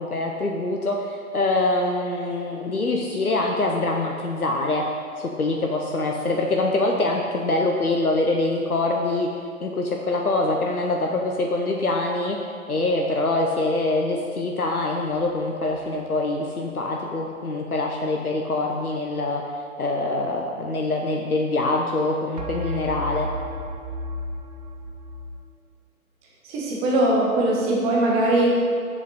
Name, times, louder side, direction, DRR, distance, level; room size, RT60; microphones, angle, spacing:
voice 1, 0.0-4.9 5.2-9.3 9.6-19.4 19.8-23.3, left 2 dB, 85° left, 1 dB, 0.9 m, -24 dB
sound 1, 15.5-15.9 22.4-25.4, left 1 dB, 30° right, 0.6 m, -34 dB
voice 2, 26.4-28.6, right 1 dB, 15° right, -4 dB, 1.1 m, -21 dB
7.6 x 7.1 x 4.2 m, 2.3 s
figure-of-eight pair, 125°, 43 cm